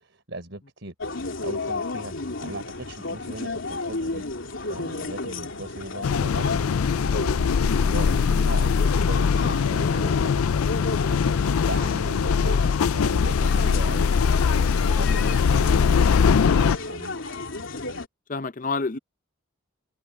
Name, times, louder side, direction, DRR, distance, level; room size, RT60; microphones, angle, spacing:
voice 1, 0.0-2.1 2.4-4.2 4.7-6.8 7.1-10.4 10.7-17.2, right 1 dB, 55° right, 4.3 m, -39 dB
sound 1, 1.0-18.1, left 3 dB, 65° left, 3.0 m, -33 dB
sound 2, 6.0-16.8, left 6 dB, 85° left, 0.4 m, -21 dB
voice 2, 17.7-18.0 18.3-19.0, left 4 dB, 35° left, 0.6 m, -29 dB
head